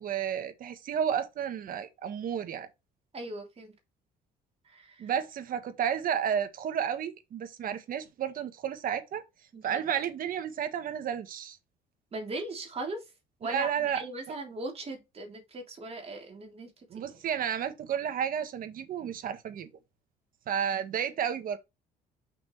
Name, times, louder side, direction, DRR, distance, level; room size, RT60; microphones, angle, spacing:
voice 1, 0.0-2.7 5.0-9.2 9.6-11.6 13.4-14.0 16.9-19.7 20.5-21.6, right 8 dB, 55° right, 1.6 m, -32 dB
voice 2, 3.1-3.7 4.6-5.1 9.5-9.8 12.1-13.0 13.4-16.7 16.9-17.0, right 2 dB, 35° right, 3.3 m, -39 dB
6.1 x 6.1 x 3.2 m
cardioid pair, 110°, 17 cm